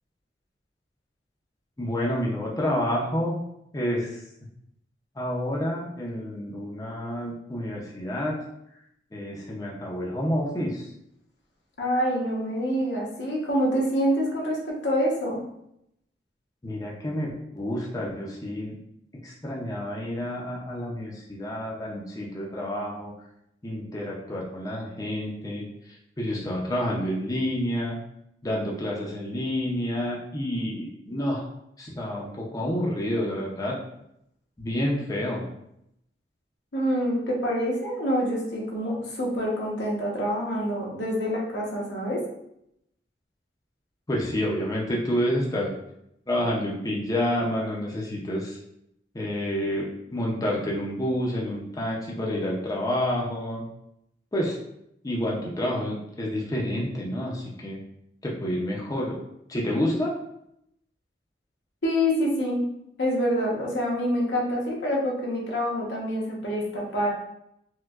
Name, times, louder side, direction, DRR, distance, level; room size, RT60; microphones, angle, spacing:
voice 1, 1.8-3.4 3.7-4.2 5.1-8.4 8.7-8.8 9.1-10.9 16.6-18.8 19.2-23.1 23.6-28.0 28.4-31.5 31.8-33.8 34.6-35.4 44.1-45.7 46.3-48.6 49.1-53.6 54.3-54.6 55.0-57.8 58.2-59.2 59.5-60.1, equal, 20° left, -3 dB, 0.5 m, -29 dB
voice 2, 11.8-15.4 36.7-42.2 61.8-62.6 63.0-67.1, equal, 85° left, -3 dB, 0.9 m, -26 dB
4.4 x 2.1 x 2.3 m, 0.79 s
head